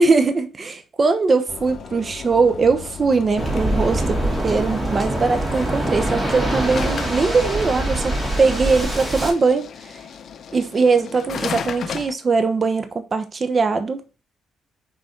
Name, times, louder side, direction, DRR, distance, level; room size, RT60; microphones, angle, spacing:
voice 1, 0.0-9.7 10.5-14.0, right 4 dB, 35° right, 1.1 m, -20 dB
sound 1, 1.5-4.2 6.7-12.1, left 7 dB, 55° left, 0.6 m, -35 dB
Waves surf, 3.4-9.3, right 1 dB, 5° right, 2.7 m, -24 dB
6.5 x 4.1 x 4.5 m
cardioid pair, 90°, 0 cm